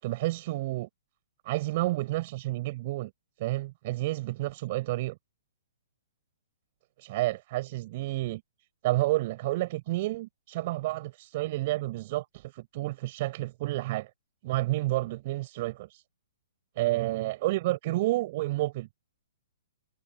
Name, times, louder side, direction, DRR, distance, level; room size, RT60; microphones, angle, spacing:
voice 1, 0.0-0.9 1.4-3.1 3.4-5.2 7.0-8.4 8.8-14.1 14.4-16.0 16.8-18.9, right 18 dB, 45° right, 7.0 m, -30 dB
hypercardioid pair, 145°, 0 cm